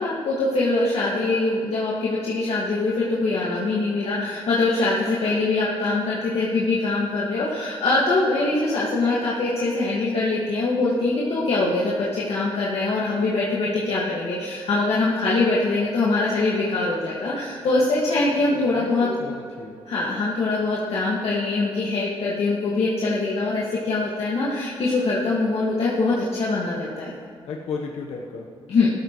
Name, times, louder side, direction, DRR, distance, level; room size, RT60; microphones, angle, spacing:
voice 1, 0.0-19.1 19.9-27.1 28.7-28.9, left 3 dB, 65° left, -6 dB, 1.9 m, -23 dB
voice 2, 18.5-19.8 27.5-28.4, left 4 dB, 85° left, 0 dB, 1.1 m, -34 dB
16.0 x 13.0 x 3.1 m, 2.4 s
cardioid pair, 85°, 11 cm